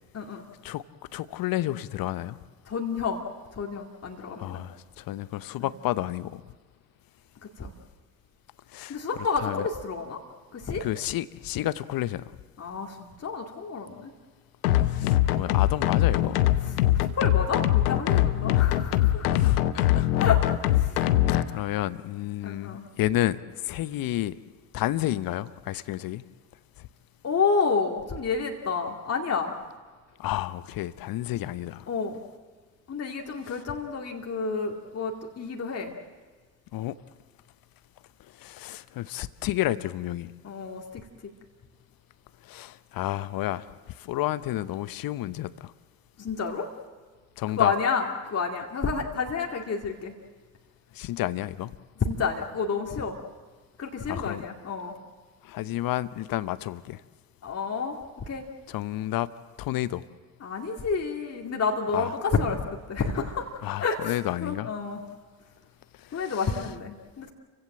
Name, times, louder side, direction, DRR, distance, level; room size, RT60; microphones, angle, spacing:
voice 1, 1.1-2.4 4.4-6.4 8.7-9.0 9.4-9.7 10.8-12.3 14.8-16.5 19.3-20.1 21.3-24.4 24.7-26.2 26.8-26.9 30.2-31.9 33.4-33.6 36.7-37.0 38.3-40.3 42.4-45.7 47.4-47.7 50.9-51.7 54.1-54.4 55.4-57.0 58.7-59.3 59.6-60.0 61.9-62.1 63.6-64.7 66.0-66.7, left 14 dB, 50° left, 0.9 m, -31 dB
voice 2, 2.7-3.2 3.5-4.6 5.6-5.7 7.6-7.7 8.9-10.2 10.5-10.8 12.6-14.1 16.6-16.7 17.2-19.4 20.2-21.0 22.4-22.8 27.2-29.5 31.9-32.2 32.9-35.9 40.4-41.0 46.2-46.7 47.6-50.1 52.0-53.2 53.8-55.0 57.4-58.0 58.3-58.4 60.4-62.6 62.9-63.5 63.8-64.1 64.4-65.0 66.1-67.3, left 5 dB, 35° left, 2.3 m, -29 dB
sound 1, 14.6-21.4, left 13 dB, 75° left, 0.9 m, -22 dB
29.0 x 16.0 x 7.6 m
figure-of-eight pair, 55°, 45 cm